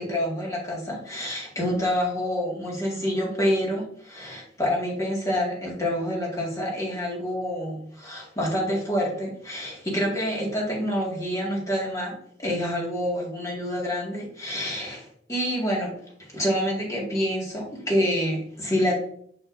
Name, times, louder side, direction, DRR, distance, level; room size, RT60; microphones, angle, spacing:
voice 1, 0.0-15.9 16.2-19.0, equal, 20° left, -3 dB, 2.0 m, -27 dB
6.4 x 6.0 x 2.6 m, 0.63 s
head